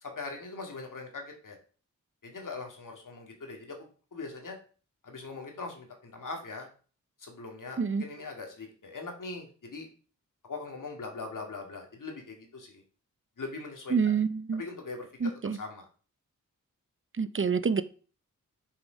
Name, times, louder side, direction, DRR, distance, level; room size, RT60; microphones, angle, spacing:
voice 1, 0.0-1.6 2.2-3.8 4.1-4.6 5.0-6.7 7.2-9.9 10.4-12.8 13.4-13.9 14.6-15.9, left 3 dB, 70° left, 3 dB, 2.3 m, -41 dB
voice 2, 13.9-14.6 15.2-15.6 17.2-17.8, right 5 dB, 40° right, 14 dB, 0.6 m, -27 dB
6.6 x 5.6 x 5.2 m, 0.39 s
cardioid pair, 60°, 33 cm